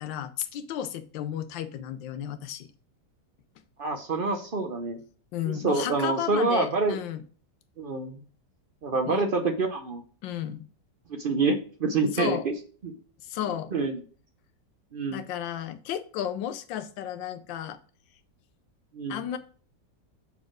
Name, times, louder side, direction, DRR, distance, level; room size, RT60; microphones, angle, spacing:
voice 1, 0.0-2.7 5.3-7.2 9.0-9.2 10.2-10.6 12.1-12.5 13.2-13.7 15.1-17.8 19.1-19.4, left 10 dB, 85° left, 11 dB, 1.4 m, -33 dB
voice 2, 3.8-5.0 5.5-7.0 7.8-8.2 8.8-10.0 11.1-12.5 12.8-12.9 13.7-14.0 14.9-15.2 18.9-19.2, right 3 dB, 80° right, 6 dB, 0.4 m, -27 dB
6.9 x 4.3 x 4.8 m, 0.42 s
omnidirectional pair, 2.0 m